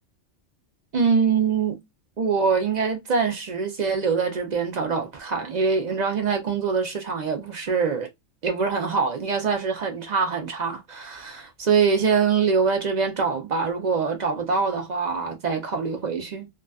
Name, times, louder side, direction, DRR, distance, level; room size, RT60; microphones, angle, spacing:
voice 1, 0.9-1.8 2.2-8.1 8.4-16.5, right 5 dB, 50° right, 0.5 m, -24 dB
2.4 x 2.3 x 2.2 m
omnidirectional pair, 1.3 m